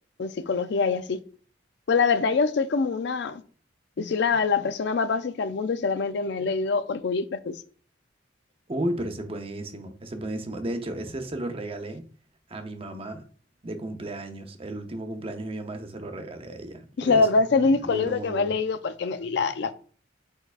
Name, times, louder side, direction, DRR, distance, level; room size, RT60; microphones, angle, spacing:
voice 1, 0.2-1.2 1.9-3.4 4.0-7.6 17.0-19.7, left 4 dB, 65° left, 0.4 m, -24 dB
voice 2, 8.7-12.0 12.5-13.2 13.6-18.5, right 1 dB, 30° right, 0.7 m, -34 dB
4.6 x 4.5 x 2.4 m
head